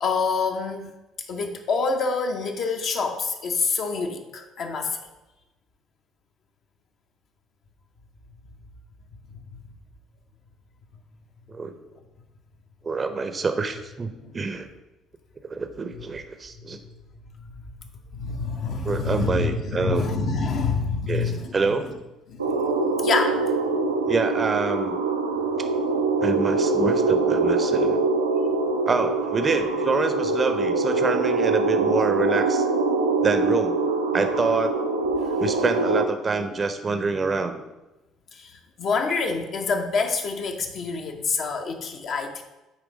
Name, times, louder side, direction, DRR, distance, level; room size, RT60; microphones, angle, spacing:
voice 1, 0.0-0.9 1.3-5.0 14.2-14.3 18.1-21.6 22.3-22.4 23.0-23.4 35.2-35.4 38.3-38.5 38.8-42.4, left 4 dB, 45° left, 4 dB, 0.8 m, -26 dB
voice 2, 12.8-14.7 15.4-16.8 18.8-20.1 21.1-21.9 24.1-25.0 26.2-28.0 28.9-32.6 33.2-33.8 34.1-34.8 35.4-37.6, right 4 dB, 30° right, 8 dB, 0.6 m, -26 dB
sound 1, 22.4-36.1, right 3 dB, 80° right, 0.4 m, -23 dB
8.4 x 3.3 x 5.0 m, 1.0 s
figure-of-eight pair, 50°, 0 cm